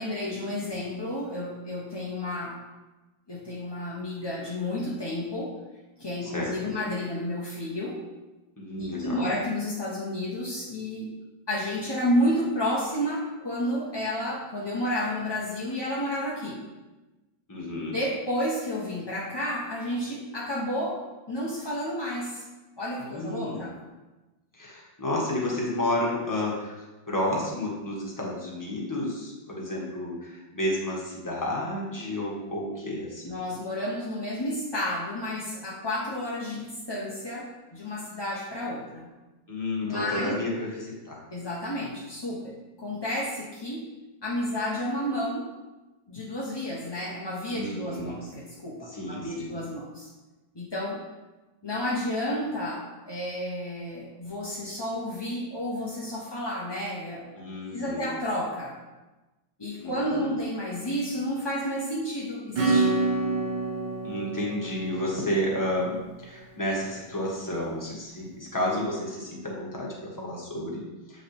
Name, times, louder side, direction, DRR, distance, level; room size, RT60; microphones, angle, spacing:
voice 1, 0.0-2.6 3.3-5.5 6.0-8.0 8.8-11.1 11.5-16.6 17.9-21.0 21.3-22.4 22.8-23.7 33.2-39.1 39.8-40.3 41.3-43.8 44.2-45.5 46.1-50.1 50.5-51.0 51.6-57.5 57.7-58.7 59.6-63.0, left 1 dB, 25° left, -5 dB, 0.5 m, -31 dB
voice 2, 6.2-6.7 8.6-9.4 17.5-18.0 23.1-23.7 24.5-26.7 27.1-33.3 39.5-41.2 47.5-48.2 48.9-49.6 57.3-58.2 59.8-60.3 64.0-71.2, left 1 dB, 10° left, -4 dB, 1.3 m, -31 dB
Acoustic guitar / Strum, 62.6-66.8, right 3 dB, 70° right, 1.7 m, -28 dB
7.7 x 5.6 x 3.5 m, 1.1 s
omnidirectional pair, 2.0 m